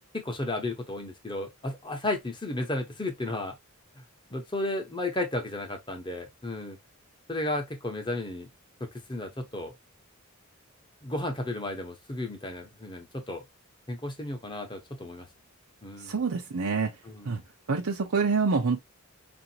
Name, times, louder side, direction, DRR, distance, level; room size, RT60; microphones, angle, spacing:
voice 1, 0.1-3.6 4.0-4.1 4.3-6.8 7.3-8.5 8.8-9.7 11.0-13.4 13.9-15.3 15.8-16.2 17.0-17.4, left 2 dB, 20° left, 0.8 m, -33 dB
voice 2, 16.0-16.9 17.2-17.4 17.7-18.8, right 4 dB, 80° right, 0.7 m, -26 dB
4.8 x 2.6 x 2.7 m
head